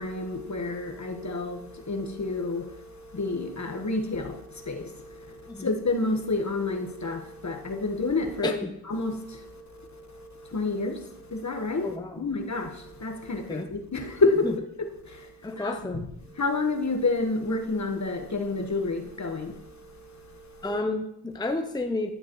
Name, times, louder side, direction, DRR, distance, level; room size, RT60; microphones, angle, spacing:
voice 1, 0.0-8.5 8.9-14.5 15.0-20.6, left 3 dB, 45° left, 1.4 m, -30 dB
voice 2, 8.4-8.7 11.8-12.2 13.5-13.7 14.4-14.5 15.4-16.1 20.6-22.1, left 2 dB, 10° left, 0.7 m, -31 dB
11.5 x 10.0 x 3.1 m
wide cardioid pair, 80°, 40 cm